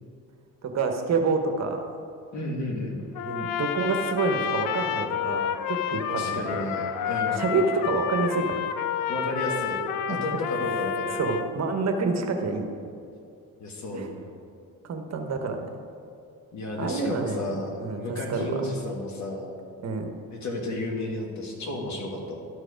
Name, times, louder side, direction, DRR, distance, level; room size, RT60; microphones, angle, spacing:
voice 1, 0.6-1.9 3.3-6.4 7.3-8.6 10.1-10.2 11.1-12.7 13.9-14.1 14.8-15.7 16.8-17.5 17.8-18.6 19.8-20.1, right 4 dB, 50° right, 4 dB, 1.1 m, -28 dB
voice 2, 2.3-3.0 6.1-7.4 9.1-9.8 10.1-11.2 13.6-14.3 16.5-19.5 20.3-22.4, left 1 dB, 50° left, 0 dB, 2.0 m, -32 dB
Trumpet, 3.1-11.5, left 8 dB, 70° left, 0.6 m, -29 dB
12.5 x 4.8 x 5.1 m, 2.4 s
cardioid pair, 100°, 35 cm